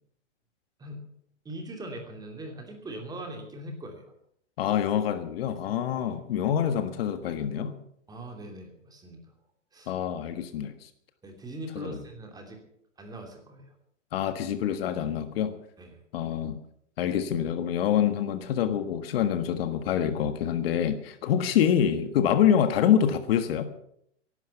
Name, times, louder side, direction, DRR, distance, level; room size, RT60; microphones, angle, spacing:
voice 1, 1.4-4.1 5.9-6.2 8.1-9.3 9.7-9.9 11.2-12.6 13.0-13.7 15.8-16.0, right 1 dB, 10° right, 3.0 m, -41 dB
voice 2, 4.6-7.8 9.9-10.9 11.7-12.0 14.1-15.6 16.1-16.6 17.0-23.7, left 9 dB, 55° left, 1.5 m, -26 dB
15.5 x 11.5 x 7.0 m
hypercardioid pair, 145°, 36 cm